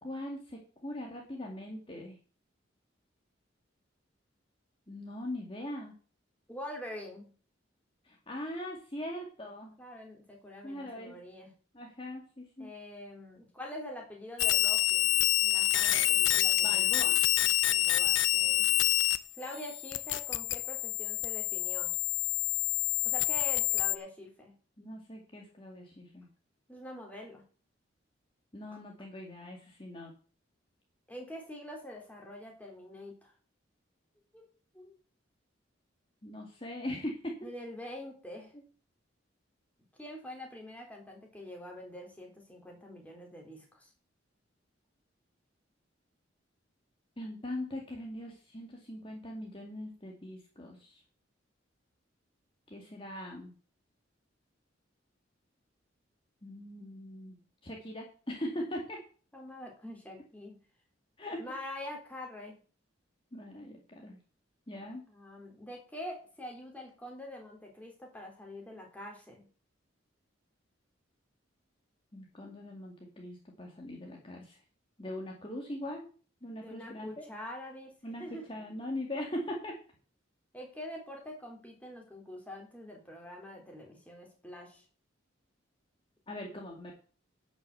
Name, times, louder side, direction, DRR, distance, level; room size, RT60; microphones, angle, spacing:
voice 1, 0.0-2.2 4.9-5.9 8.0-9.8 10.6-11.2 11.7-12.7 16.6-17.2 24.8-26.3 28.5-30.1 36.2-37.4 47.2-51.0 52.7-53.5 56.4-57.4 57.6-59.0 61.2-61.4 63.3-64.2 64.7-65.1 72.1-74.6 75.0-76.1 76.4-77.3 78.0-79.7 86.3-86.9, left 1 dB, 30° left, 0 dB, 2.1 m, -41 dB
voice 2, 6.5-7.3 9.8-11.5 12.6-15.1 15.4-17.2 17.6-18.7 19.3-21.9 23.0-24.5 26.7-27.4 28.7-28.8 31.1-33.3 34.3-34.5 34.7-34.9 37.4-38.5 40.0-43.9 58.5-58.6 59.3-60.6 61.4-62.6 65.1-69.4 76.6-77.9 78.2-78.4 80.5-84.8, left 1 dB, 10° left, 0 dB, 3.4 m, -45 dB
sound 1, 14.4-19.2 19.4-24.0, left 16 dB, 80° left, 0.7 m, -27 dB
11.0 x 6.3 x 7.9 m, 0.40 s
head